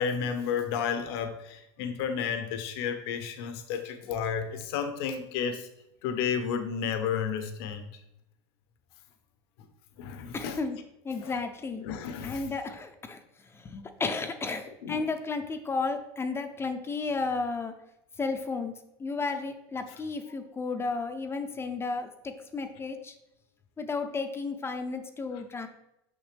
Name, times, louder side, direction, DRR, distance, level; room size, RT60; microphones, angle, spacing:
voice 1, 0.0-5.7 6.0-7.8 10.0-10.6 11.2-11.3 11.8-12.5 14.8-15.1 19.9-20.0 25.3-25.4, left 7 dB, 70° left, 7 dB, 0.9 m, -32 dB
voice 2, 10.3-10.8 11.1-11.8 12.2-13.2 13.6-17.7 18.2-18.7 19.0-23.1 23.8-25.7, left 4 dB, 20° left, 6 dB, 0.5 m, -33 dB
6.1 x 5.7 x 3.4 m, 0.84 s
supercardioid pair, 120°, 13 cm